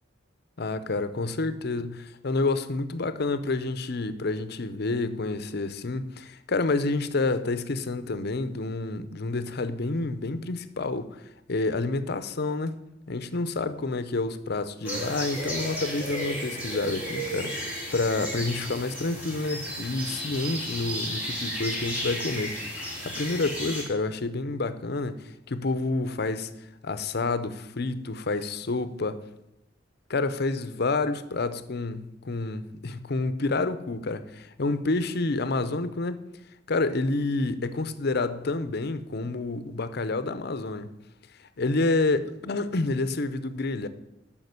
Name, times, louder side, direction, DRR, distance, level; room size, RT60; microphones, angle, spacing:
voice 1, 0.6-11.2 11.5-12.7 13.1-22.6 23.0-26.5 26.8-29.2 30.1-36.3 36.7-40.9 41.6-43.9, left 3 dB, 60° left, 0.7 m, -29 dB
sound 1, 14.8-23.8, equal, 10° right, 4.0 m, -33 dB
8.7 x 5.8 x 8.2 m
head